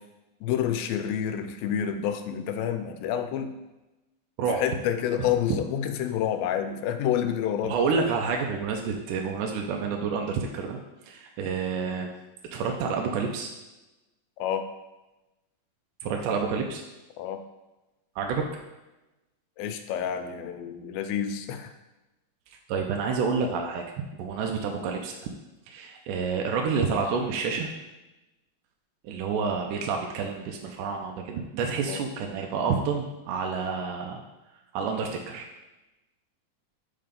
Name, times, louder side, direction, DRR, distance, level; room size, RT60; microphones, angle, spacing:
voice 1, 0.4-3.5 4.5-7.8 14.4-14.6 17.2-17.4 19.6-21.7 31.9-32.0, left 9 dB, 90° left, 8 dB, 2.4 m, -28 dB
voice 2, 7.6-10.8 11.1-12.1 12.5-13.5 16.0-16.8 18.2-18.5 22.7-23.8 24.2-25.2 25.7-27.7 29.0-34.2 34.7-35.5, right 5 dB, 80° right, 2 dB, 2.0 m, -29 dB
5.8 x 4.5 x 5.1 m, 1.0 s
omnidirectional pair, 4.1 m